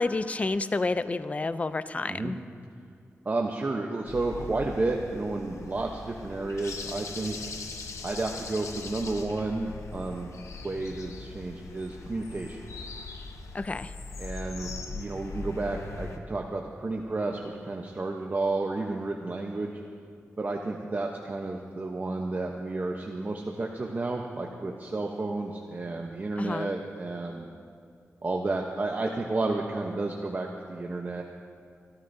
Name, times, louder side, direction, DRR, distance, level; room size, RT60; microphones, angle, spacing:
voice 1, 0.0-2.4 13.5-13.9 26.4-26.7, left 3 dB, 30° left, 13 dB, 0.4 m, -29 dB
voice 2, 3.2-7.4 8.0-10.3 10.6-12.6 14.2-19.8 20.4-27.5 28.2-31.2, right 2 dB, 35° right, 1 dB, 0.8 m, -31 dB
sound 1, 4.1-16.2, left 3 dB, 85° left, 0.9 m, -41 dB
29.0 x 13.0 x 2.7 m, 2.3 s
wide cardioid pair, 85°, 5 cm